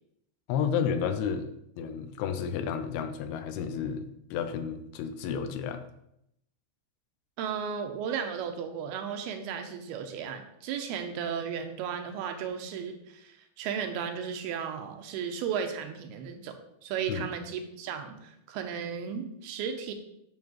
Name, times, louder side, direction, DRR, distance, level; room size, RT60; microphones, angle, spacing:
voice 1, 0.5-1.5 1.8-5.8 17.1-17.3, left 7 dB, 80° left, 9 dB, 2.5 m, -31 dB
voice 2, 7.4-16.5 16.8-19.9, right 7 dB, 85° right, 6 dB, 2.7 m, -35 dB
9.4 x 7.0 x 3.2 m, 0.78 s
omnidirectional pair, 4.6 m